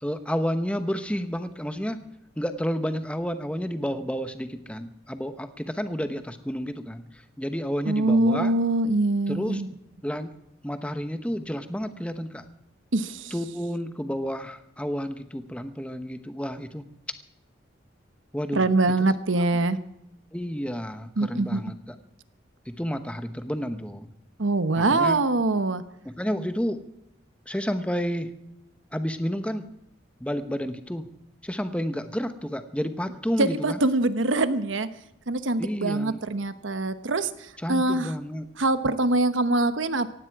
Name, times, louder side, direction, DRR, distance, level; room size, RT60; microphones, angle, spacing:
voice 1, 0.0-2.0 2.4-8.5 9.3-9.6 10.0-10.3 10.6-12.4 13.3-16.8 18.3-18.7 20.3-21.7 22.7-24.1 24.9-25.2 26.0-26.8 27.5-28.3 28.9-29.6 30.2-31.1 31.4-33.8 35.6-36.2 37.6-38.5, equal, 5° left, 9 dB, 1.0 m, -30 dB
voice 2, 7.9-9.7 12.9-13.3 18.5-19.8 21.2-21.6 24.4-25.8 33.4-34.9 35.3-38.1 38.6-40.1, right 2 dB, 80° right, 12 dB, 1.1 m, -24 dB
18.0 x 16.0 x 4.8 m, 0.84 s
head